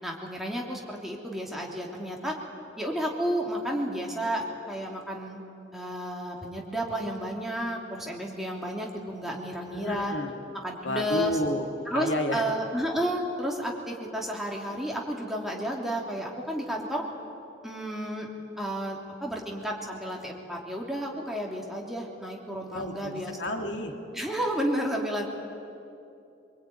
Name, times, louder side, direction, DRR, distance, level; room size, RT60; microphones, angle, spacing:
voice 1, 0.0-2.4 2.8-5.4 5.7-10.1 10.6-11.4 11.9-17.0 17.6-18.3 18.6-23.5 24.1-25.3, equal, ahead, -1 dB, 3.1 m, -32 dB
voice 2, 9.7-10.3 10.8-12.5 22.7-23.9, left 1 dB, 75° left, 4 dB, 2.2 m, -31 dB
24.5 x 23.0 x 9.5 m, 2.7 s
head